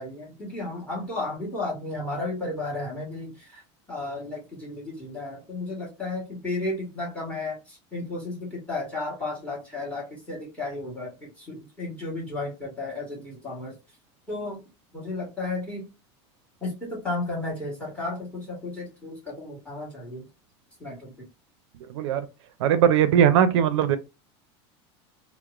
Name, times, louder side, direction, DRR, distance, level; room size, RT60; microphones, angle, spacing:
voice 1, 0.0-3.6 3.9-13.7 14.3-14.6 14.9-15.8 16.6-20.2 20.8-21.3, left 2 dB, 10° left, 1.4 m, -33 dB
voice 2, 21.9-22.3 22.6-24.0, right 9 dB, 85° right, 0.4 m, -20 dB
2.8 x 2.0 x 2.3 m
supercardioid pair, 140°, 14 cm